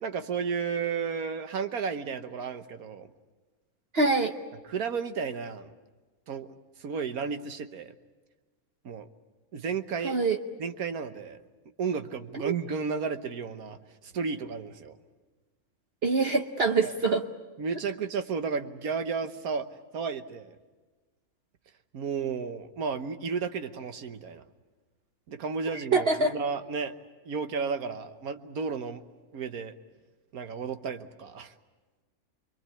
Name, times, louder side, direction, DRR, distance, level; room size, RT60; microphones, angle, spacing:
voice 1, 0.0-3.1 4.6-5.7 6.3-6.5 6.8-7.9 8.8-9.1 9.5-10.2 10.6-11.4 11.8-15.0 16.8-16.9 17.6-19.7 19.9-20.6 21.9-24.4 25.3-26.9 27.2-29.0 29.3-29.7 30.3-31.5, right 5 dB, 75° right, 9 dB, 1.6 m, -33 dB
voice 2, 3.9-4.3 10.0-10.4 12.4-12.5 16.0-17.2 25.9-26.3, right 3 dB, 45° right, 6 dB, 1.1 m, -24 dB
26.0 x 22.5 x 8.5 m, 1.3 s
omnidirectional pair, 1.5 m